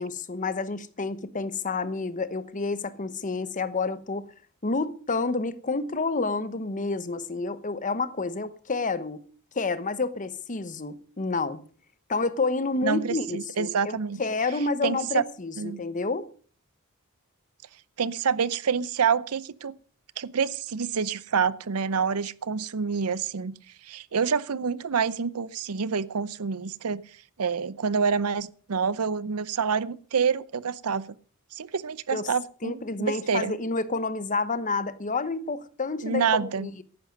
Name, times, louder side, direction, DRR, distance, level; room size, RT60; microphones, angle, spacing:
voice 1, 0.0-4.3 4.6-9.2 9.5-11.6 12.1-16.3 32.1-32.3 32.6-36.8, left 3 dB, 35° left, 1.0 m, -29 dB
voice 2, 12.8-14.2 14.8-15.2 15.6-15.8 18.0-19.7 20.2-23.5 23.8-27.0 27.4-31.1 31.5-33.6 36.0-36.7, right 6 dB, 80° right, 0.6 m, -27 dB
14.5 x 11.0 x 5.3 m
head